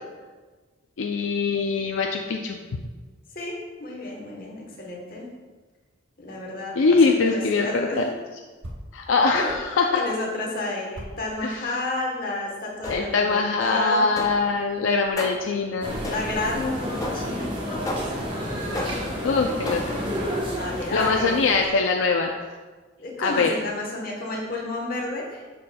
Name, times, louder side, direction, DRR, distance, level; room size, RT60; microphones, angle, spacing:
voice 1, 1.0-2.6 6.7-8.1 8.9-10.0 11.4-11.8 12.9-16.0 19.2-19.9 20.9-22.3 23.2-23.5, left 4 dB, 80° left, 3 dB, 0.4 m, -22 dB
voice 2, 3.3-5.3 6.2-7.0 7.3-8.1 9.3-9.5 9.9-14.0 16.1-18.3 18.6-18.9 20.5-21.5 23.0-25.4, left 2 dB, 45° left, -2 dB, 1.2 m, -31 dB
sound 1, 8.6-9.7 10.2-10.3 10.9-11.8 12.7-15.2, equal, 80° right, 1.0 m, -43 dB
sound 2, 12.8-13.3 14.2-14.6 15.2-15.6 16.0-16.5 17.0-17.4 17.9-18.3 18.7-19.2 19.7-20.1, left 1 dB, 15° left, 0.5 m, -34 dB
sound 3, 15.8-21.7, equal, 25° right, 1.0 m, -30 dB
11.0 x 4.2 x 2.3 m, 1.3 s
head